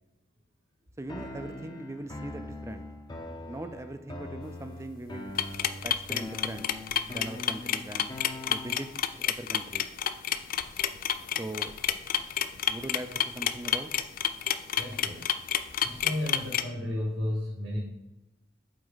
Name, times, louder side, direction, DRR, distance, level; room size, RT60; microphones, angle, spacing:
voice 1, 1.0-2.8 3.5-5.4 5.8-6.7 7.1-8.1 8.4-8.9 9.2-9.9 11.4-11.7 12.7-13.9, right 1 dB, 15° right, 10 dB, 0.4 m, -40 dB
sound 1, 1.1-9.1, left 2 dB, 25° left, 0.7 m, -42 dB
sound 2, 5.4-16.6, left 9 dB, 50° left, 0.3 m, -29 dB
voice 2, 14.5-15.3 15.8-17.8, left 1 dB, 85° right, -6 dB, 2.2 m, -34 dB
7.8 x 4.3 x 3.9 m, 0.93 s
head